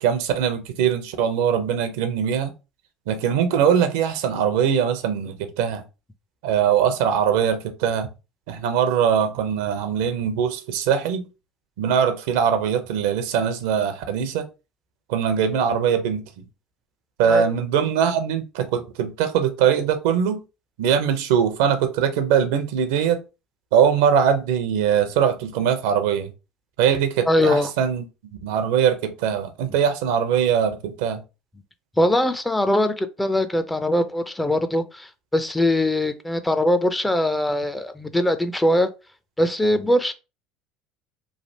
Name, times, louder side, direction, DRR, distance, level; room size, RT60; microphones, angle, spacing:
voice 1, 0.0-2.5 3.1-5.8 6.4-8.1 8.5-11.3 11.8-14.5 15.1-16.2 17.2-20.4 20.8-23.2 23.7-26.3 26.8-28.1 28.4-31.2, right 8 dB, 75° right, 0.6 m, -21 dB
voice 2, 27.3-27.7 32.0-38.9 39.4-40.1, left 1 dB, 10° left, 0.4 m, -21 dB
3.2 x 2.4 x 2.7 m
hypercardioid pair, 80°, 0 cm